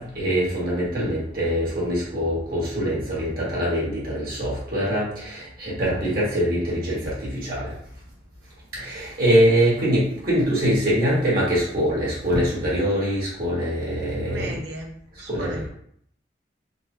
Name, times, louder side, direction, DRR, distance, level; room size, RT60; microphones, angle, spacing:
voice 1, 0.0-7.7 8.7-14.6 15.3-15.6, equal, 50° right, -6 dB, 1.4 m, -23 dB
voice 2, 14.2-15.7, right 1 dB, 65° right, 1 dB, 0.6 m, -36 dB
3.8 x 2.2 x 2.7 m, 0.66 s
head